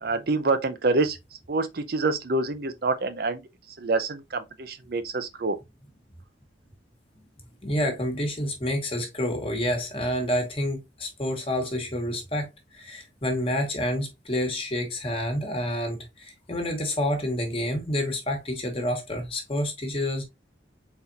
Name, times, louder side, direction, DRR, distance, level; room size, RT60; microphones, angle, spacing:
voice 1, 0.0-1.2 1.5-3.4 3.8-5.6, right 3 dB, 55° right, 0.5 m, -26 dB
voice 2, 7.6-20.3, left 1 dB, 30° left, 1.3 m, -28 dB
4.2 x 4.0 x 2.7 m
head